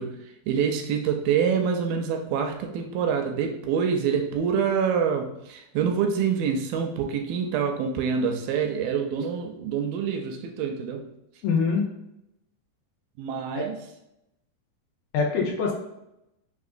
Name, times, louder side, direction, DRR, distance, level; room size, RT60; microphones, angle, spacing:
voice 1, 0.0-11.1 13.2-13.8, right 7 dB, 80° right, 4 dB, 2.1 m, -26 dB
voice 2, 11.4-11.9 13.6-13.7 15.1-15.7, left 5 dB, 80° left, -1 dB, 2.4 m, -24 dB
5.8 x 2.4 x 2.5 m, 0.87 s
omnidirectional pair, 4.3 m